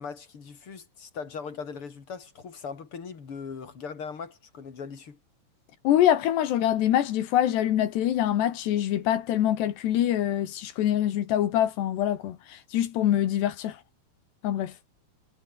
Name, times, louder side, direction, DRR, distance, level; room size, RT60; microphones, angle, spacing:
voice 1, 0.0-5.2, left 5 dB, 35° left, 3.1 m, -39 dB
voice 2, 5.8-13.8 14.4-14.7, left 11 dB, 80° left, 3.9 m, -24 dB
omnidirectional pair, 4.8 m